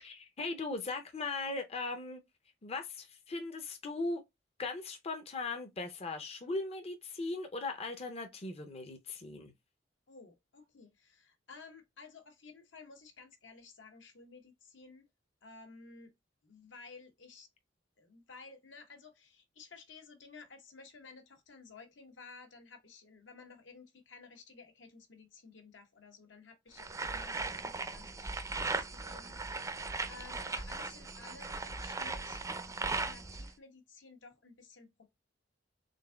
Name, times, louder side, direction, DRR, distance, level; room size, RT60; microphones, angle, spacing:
voice 1, 0.0-2.2 2.6-4.2 4.6-9.5, left 3 dB, 35° left, 0.6 m, -38 dB
voice 2, 10.1-15.0 15.4-16.1 16.4-17.5 18.0-35.1, left 4 dB, 80° left, 1.1 m, -54 dB
sound 1, 26.8-33.5, right 3 dB, 15° right, 0.4 m, -38 dB
3.9 x 3.6 x 2.2 m
head